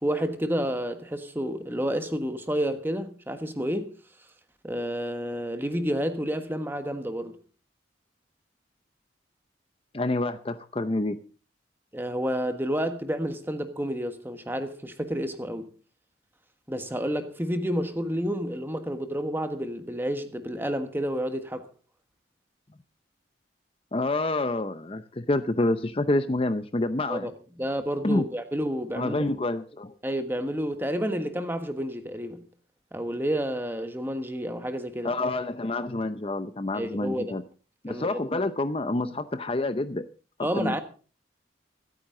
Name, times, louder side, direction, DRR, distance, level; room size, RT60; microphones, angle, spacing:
voice 1, 0.0-3.9 4.6-7.4 11.9-15.7 16.7-21.7 27.1-27.3 27.6-29.2 30.0-32.4 32.9-35.1 36.7-37.4 37.9-38.2 40.4-40.8, equal, 10° right, 1.3 m, -30 dB
voice 2, 9.9-11.2 23.9-27.3 28.0-28.2 28.9-29.9 35.0-37.4 37.8-40.0 40.6-40.8, left 2 dB, 30° left, 0.6 m, -28 dB
24.5 x 9.0 x 3.8 m
head